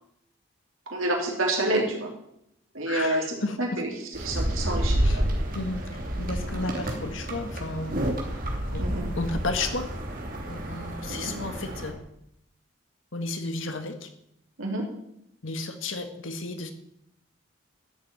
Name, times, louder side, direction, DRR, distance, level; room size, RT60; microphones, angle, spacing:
voice 1, 0.9-2.1 2.7-3.2 3.6-3.9 4.2-5.3 6.4-6.5 8.8-9.1 11.1-11.3 14.6-14.8, right 1 dB, 90° right, -1 dB, 3.4 m, -28 dB
voice 2, 2.8-3.8 5.0-5.2 5.5-8.0 8.7-8.8 9.2-9.9 10.5-12.0 13.1-14.1 15.4-16.7, left 3 dB, 75° left, 7 dB, 1.6 m, -33 dB
sound 1, 4.1-11.9, equal, 45° right, 2.9 m, -29 dB
13.5 x 7.3 x 9.4 m, 0.77 s
head